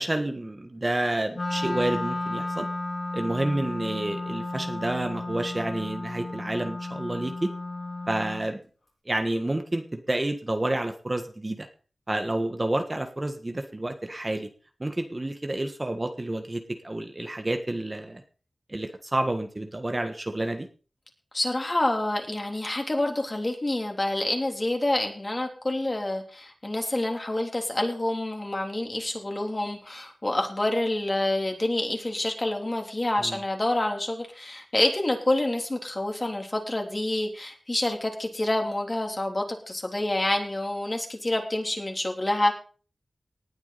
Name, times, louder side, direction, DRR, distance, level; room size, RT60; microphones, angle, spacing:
voice 1, 0.0-2.7 3.1-7.5 8.1-8.6 9.0-11.7 12.1-14.5 14.8-18.2 18.7-20.7 33.2-33.4, right 1 dB, 30° right, 6 dB, 1.5 m, -29 dB
Wind instrument woodwind instrument, 1.3-8.5, left 2 dB, 60° left, 5.6 m, -33 dB
voice 2, 21.3-42.5, left 1 dB, 35° left, 2 dB, 3.4 m, -27 dB
19.0 x 8.4 x 4.1 m, 0.38 s
wide cardioid pair, 65°, 0 cm